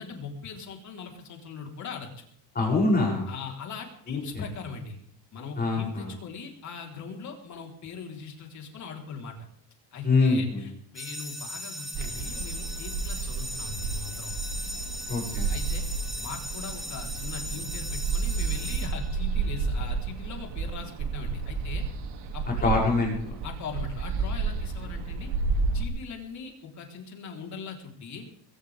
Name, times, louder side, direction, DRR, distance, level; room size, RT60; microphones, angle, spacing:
voice 1, 0.0-2.3 3.3-5.0 5.3-9.4 9.9-14.4 15.5-15.8 16.2-21.8 22.3-22.7 23.4-25.3 25.7-28.3, left 5 dB, 35° left, 1 dB, 4.2 m, -40 dB
voice 2, 2.5-3.3 4.1-4.4 5.6-6.1 10.0-10.6 15.1-15.5 22.6-23.3, left 3 dB, 20° left, -3 dB, 7.7 m, -24 dB
sound 1, 10.9-19.6, left 1 dB, ahead, 2.6 m, -38 dB
sound 2, 11.9-25.8, right 4 dB, 60° right, 2.9 m, -31 dB
21.5 x 17.5 x 3.7 m, 0.64 s
cardioid pair, 170°, 48 cm